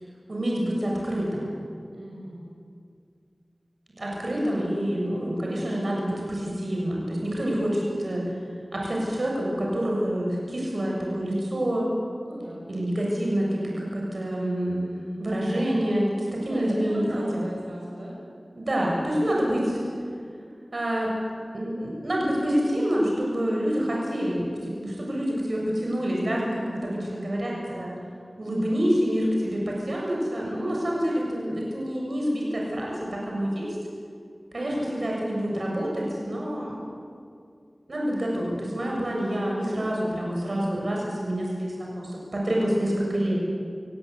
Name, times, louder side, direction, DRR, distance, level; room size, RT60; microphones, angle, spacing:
voice 1, 0.3-1.5 4.0-8.3 8.7-11.9 12.7-14.9 15.2-17.4 18.6-19.8 20.7-21.1 21.5-27.9 28.4-33.8 34.5-36.7 37.9-43.4, equal, 65° right, -2 dB, 7.0 m, -27 dB
voice 2, 1.9-2.4 12.3-12.7 16.5-18.2 30.3-31.1 38.7-39.2, right 1 dB, 80° right, -4 dB, 6.5 m, -38 dB
29.0 x 17.5 x 8.4 m, 2.3 s
wide cardioid pair, 65°, 0 cm